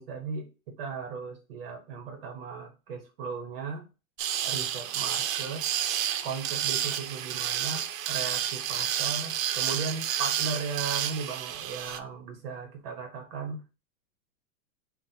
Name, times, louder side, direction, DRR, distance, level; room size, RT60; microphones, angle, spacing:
voice 1, 0.0-3.9 4.4-5.6 6.2-13.6, right 5 dB, 45° right, 3 dB, 0.8 m, -37 dB
sound 1, 4.2-12.0, right 10 dB, 75° right, 0.5 m, -30 dB
5.9 x 2.1 x 2.7 m, 0.31 s
supercardioid pair, 175°, 41 cm